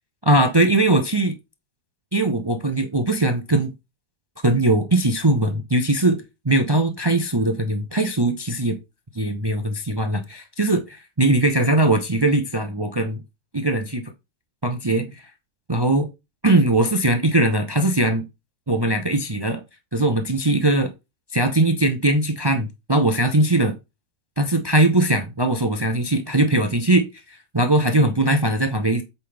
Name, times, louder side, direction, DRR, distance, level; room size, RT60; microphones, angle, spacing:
voice 1, 0.3-1.3 2.1-3.7 4.4-8.8 9.1-13.2 13.5-14.1 14.6-15.3 15.7-16.1 16.4-18.3 18.7-19.6 19.9-20.9 21.3-23.8 24.4-29.0, right 2 dB, 40° right, 0.3 m, -20 dB
8.3 x 5.5 x 3.4 m
omnidirectional pair, 1.9 m